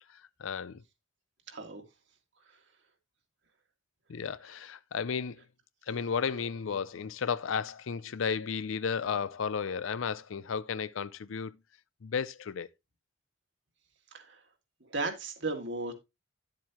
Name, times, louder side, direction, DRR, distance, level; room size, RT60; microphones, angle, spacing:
voice 1, 0.4-0.8 4.1-5.4 5.9-11.5 12.0-12.7, left 6 dB, 65° left, 0.5 m, -33 dB
voice 2, 1.5-1.8 14.1-14.4 14.8-15.9, right 3 dB, 55° right, 1.9 m, -35 dB
10.5 x 7.5 x 2.9 m
head